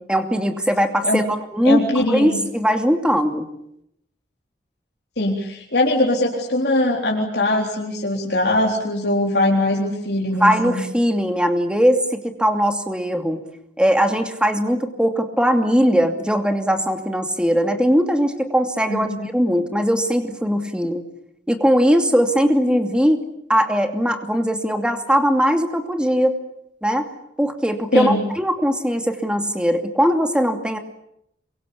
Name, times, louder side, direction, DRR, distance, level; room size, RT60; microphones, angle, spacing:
voice 1, 0.1-1.2 1.5-3.4 10.3-13.4 13.8-21.1 21.5-23.2 23.5-26.3 26.8-27.1 27.4-30.8, equal, 5° right, 5 dB, 2.6 m, -20 dB
voice 2, 1.6-2.4 5.2-10.8 18.9-19.3 27.9-28.2, left 1 dB, 65° left, -1 dB, 3.9 m, -21 dB
27.5 x 24.0 x 8.6 m, 0.77 s
head